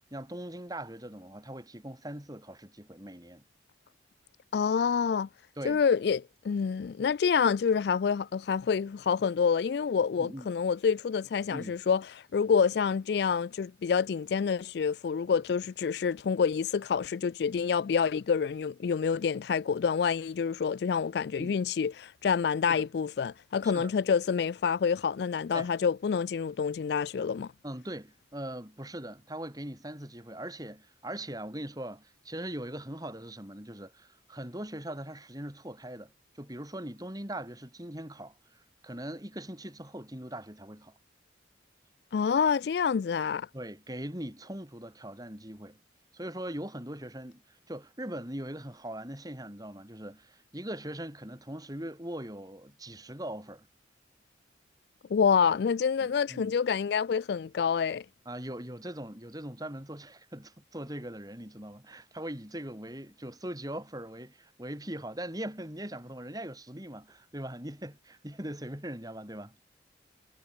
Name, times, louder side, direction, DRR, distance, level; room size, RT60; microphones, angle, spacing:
voice 1, 0.1-3.4 5.6-5.8 10.2-10.5 11.5-11.8 21.4-21.5 22.7-22.9 23.7-23.9 25.5-25.7 27.6-40.9 43.5-45.8 46.1-53.7 56.0-56.6 58.3-69.6, right 1 dB, 20° right, 5.4 m, -41 dB
voice 2, 4.5-5.3 5.6-27.5 42.1-43.5 55.1-58.0, left 6 dB, 60° left, 0.3 m, -27 dB
head